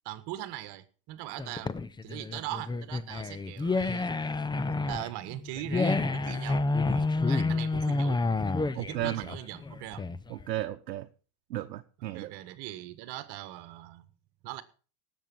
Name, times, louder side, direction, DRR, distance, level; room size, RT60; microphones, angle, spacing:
voice 1, 0.0-1.7 2.0-4.1 4.9-8.2 8.7-10.1 12.0-14.1 14.4-14.6, right 15 dB, 50° right, 1.6 m, -40 dB
sound 1, 1.4-10.4, left 3 dB, 10° left, 0.6 m, -29 dB
voice 2, 8.7-9.3 10.3-11.1 11.5-12.3, right 14 dB, 85° right, 1.0 m, -34 dB
18.0 x 7.4 x 5.4 m
hypercardioid pair, 95°, 49 cm